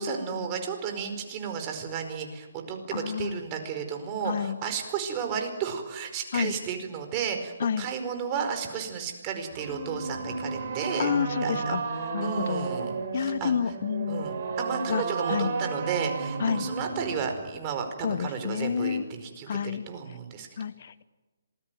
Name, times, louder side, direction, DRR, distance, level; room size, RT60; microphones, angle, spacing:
voice 1, 0.0-11.1 11.4-11.7 12.2-13.5 14.1-20.5, right 6 dB, 25° right, 5 dB, 4.9 m, -33 dB
voice 2, 2.9-3.4 4.2-4.6 6.3-6.5 7.6-7.9 11.0-11.8 12.1-12.7 13.1-14.3 14.9-15.0 15.3-15.5 16.4-16.7 18.0-19.0 19.5-19.8 20.6-21.0, left 7 dB, 55° left, 16 dB, 1.0 m, -29 dB
sound 1, 9.5-17.5, right 4 dB, 45° right, 4.9 m, -33 dB
27.0 x 20.0 x 9.4 m, 1.2 s
hypercardioid pair, 150°, 0 cm